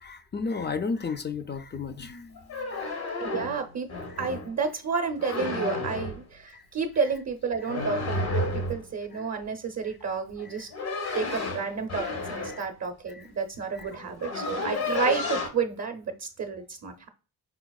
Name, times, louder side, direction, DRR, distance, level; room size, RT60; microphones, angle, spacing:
voice 1, 0.0-2.3 6.5-6.6 9.2-9.3 11.1-11.2 12.5-12.6 13.1-13.3 13.8-13.9, left 4 dB, 30° left, 0.4 m, -33 dB
sound 1, 2.4-4.5 5.2-6.2 7.7-8.9 10.4-12.7 13.5-13.6 13.9-15.5, left 2 dB, 70° left, 1.1 m, -31 dB
voice 2, 3.2-3.9 4.2-10.7 11.1-16.9, right 5 dB, 40° right, 0.6 m, -31 dB
4.9 x 2.0 x 2.3 m
supercardioid pair, 50°, 39 cm